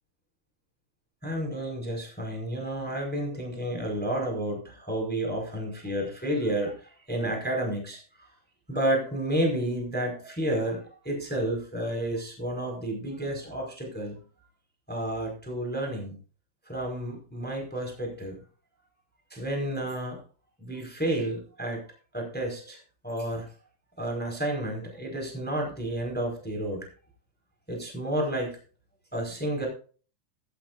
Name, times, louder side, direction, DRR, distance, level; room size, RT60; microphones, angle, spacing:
voice 1, 1.2-8.3 8.7-14.2 14.9-16.2 16.7-18.3 19.3-20.2 20.6-21.8 22.1-22.8 23.0-23.5 24.0-26.9 27.7-28.5 29.1-29.7, right 1 dB, ahead, 2 dB, 4.1 m, -31 dB
16.0 x 12.5 x 2.6 m, 0.40 s
omnidirectional pair, 5.7 m